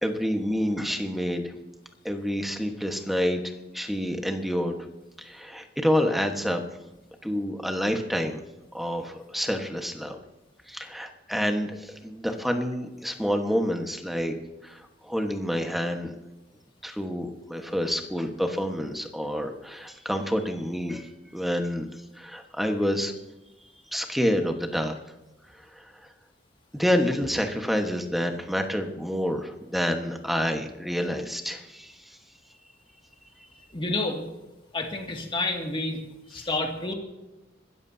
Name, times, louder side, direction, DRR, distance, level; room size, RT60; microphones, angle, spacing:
voice 1, 0.0-1.5 2.0-4.8 5.2-6.6 7.2-8.4 8.7-10.2 10.7-14.3 14.6-16.1 16.8-21.9 22.1-23.1 23.9-25.0 25.5-26.1 26.7-32.2 33.4-33.5 36.4-36.5, equal, ahead, 4 dB, 1.3 m, -28 dB
voice 2, 33.7-34.3 34.7-36.9, left 2 dB, 30° left, 2 dB, 2.2 m, -29 dB
26.0 x 13.5 x 2.8 m, 1.0 s
head